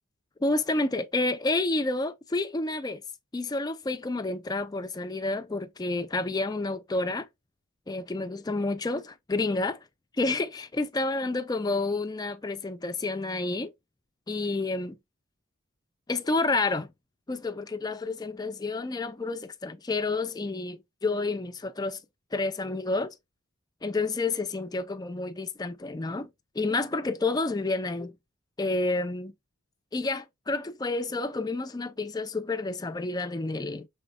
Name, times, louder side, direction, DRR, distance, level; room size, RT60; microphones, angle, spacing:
voice 1, 0.4-3.0 3.3-7.3 7.9-9.8 10.2-13.7 14.3-15.0 16.1-16.9 17.3-22.0 22.3-23.1 23.8-26.3 26.6-28.1 28.6-29.3 29.9-33.9, left 3 dB, 20° left, 0.4 m, -29 dB
5.2 x 3.6 x 2.2 m
head